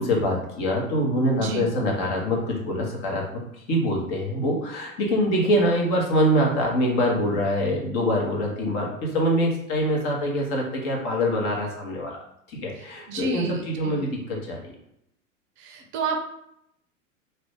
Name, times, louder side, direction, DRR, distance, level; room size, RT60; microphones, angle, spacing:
voice 1, 0.0-3.2 3.7-12.2 12.5-14.7, equal, 40° left, -1 dB, 1.2 m, -24 dB
voice 2, 13.1-14.1 15.6-16.2, right 3 dB, 30° right, 3 dB, 0.6 m, -30 dB
2.8 x 2.7 x 3.5 m, 0.77 s
figure-of-eight pair, 90°, 41 cm